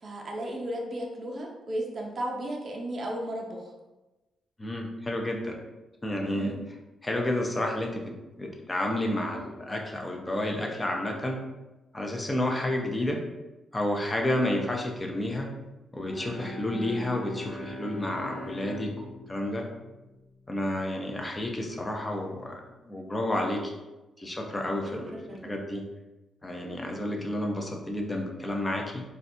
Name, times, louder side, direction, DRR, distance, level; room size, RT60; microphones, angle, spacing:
voice 1, 0.0-3.7 6.3-6.6 25.1-25.5, right 1 dB, 40° right, 0 dB, 0.5 m, -34 dB
voice 2, 4.6-5.5 6.0-6.5 7.0-8.0 8.4-11.4 11.9-13.2 13.7-15.5 15.9-18.9 19.3-19.6 20.5-23.7 24.2-25.8 26.4-29.0, left 1 dB, 15° left, 1 dB, 0.5 m, -30 dB
Bowed string instrument, 16.0-20.9, left 1 dB, 50° left, 0.8 m, -42 dB
3.9 x 2.2 x 2.6 m, 1.1 s
cardioid pair, 110°, 0 cm